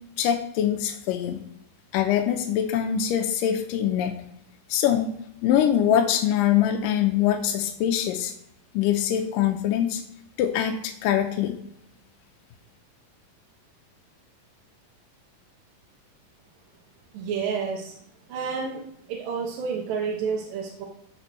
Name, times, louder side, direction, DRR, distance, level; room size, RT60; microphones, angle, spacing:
voice 1, 0.2-1.4 1.9-4.2 4.7-5.1 5.4-8.3 8.7-10.0 10.4-11.6, left 10 dB, 80° left, 4 dB, 2.2 m, -23 dB
voice 2, 17.1-17.9 18.3-18.8 19.1-20.9, right 6 dB, 80° right, -2 dB, 2.6 m, -29 dB
14.0 x 5.1 x 3.1 m, 0.74 s
omnidirectional pair, 4.1 m